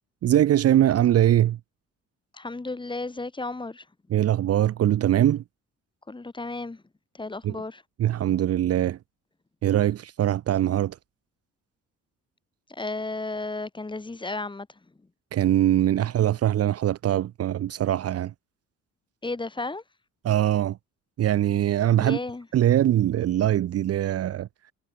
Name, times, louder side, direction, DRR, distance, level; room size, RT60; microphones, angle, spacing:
voice 1, 0.2-1.6 4.1-5.4 7.4-7.6 8.0-9.0 9.6-11.0 15.3-18.3 20.2-20.8 21.2-22.2 22.5-24.5, right 12 dB, 55° right, 0.6 m, -22 dB
voice 2, 2.3-3.8 6.1-6.8 7.2-7.8 12.7-14.7 16.0-16.1 19.2-19.8 22.0-22.5, left 3 dB, 15° left, 1.5 m, -33 dB
cardioid pair, 90°, 30 cm